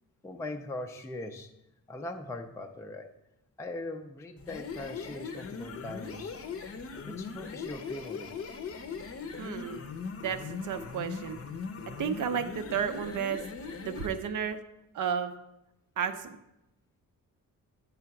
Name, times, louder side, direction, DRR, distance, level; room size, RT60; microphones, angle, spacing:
voice 1, 0.2-1.5 1.9-3.1 3.6-6.3 7.0-8.3, left 2 dB, 10° left, 4 dB, 0.4 m, -40 dB
sound 1, 4.4-14.2, left 5 dB, 45° left, 0.6 m, -40 dB
voice 2, 9.4-9.8 10.2-11.4 12.0-13.4 13.8-14.6 14.9-15.3 16.0-16.3, right 7 dB, 65° right, 8 dB, 0.6 m, -32 dB
9.7 x 3.4 x 5.9 m, 0.88 s
wide cardioid pair, 170°, 34 cm